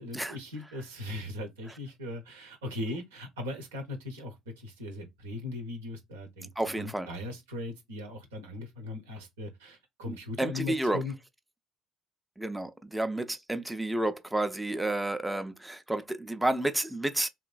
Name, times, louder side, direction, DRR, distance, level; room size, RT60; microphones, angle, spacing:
voice 1, 0.0-11.1, left 2 dB, 85° right, 0.7 m, -39 dB
voice 2, 6.6-7.1 10.1-11.0 12.4-17.3, right 1 dB, 10° right, 0.4 m, -31 dB
2.9 x 2.5 x 2.3 m
hypercardioid pair, 55°, 0 cm